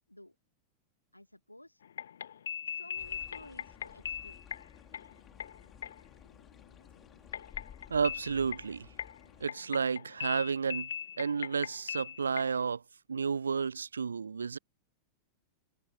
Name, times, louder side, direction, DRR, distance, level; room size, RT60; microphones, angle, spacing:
voice 1, 1.1-1.8 2.7-4.6, left 1 dB, 85° left, 2.4 m, -54 dB
sound 1, 1.8-12.6, left 9 dB, 65° left, 0.7 m, -40 dB
sound 2, 2.9-9.5, left 8 dB, 25° left, 3.7 m, -55 dB
voice 2, 7.9-8.9 9.4-10.9 11.2-12.8 13.1-14.6, right 5 dB, 75° right, 0.4 m, -31 dB
figure-of-eight pair, 90°, 0 cm